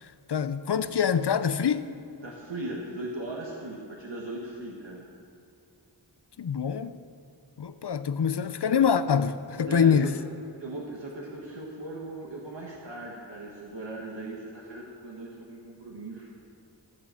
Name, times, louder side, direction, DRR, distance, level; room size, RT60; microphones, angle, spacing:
voice 1, 0.0-1.9 6.4-7.0 7.6-10.2, left 7 dB, 70° left, 0.7 m, -25 dB
voice 2, 2.2-5.0 9.6-10.1 10.6-16.3, right 2 dB, 90° right, 1.7 m, -38 dB
15.0 x 7.3 x 7.7 m
wide cardioid pair, 50°, 42 cm